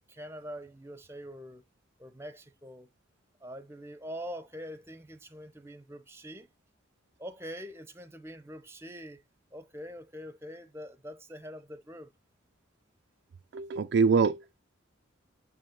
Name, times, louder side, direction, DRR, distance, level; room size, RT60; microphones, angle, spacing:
voice 1, 0.1-1.6 2.0-2.9 3.4-6.5 7.2-9.2 9.5-12.1, equal, 10° right, 0.7 m, -44 dB
voice 2, 13.5-14.6, right 5 dB, 55° right, 0.3 m, -25 dB
7.8 x 2.6 x 5.2 m
head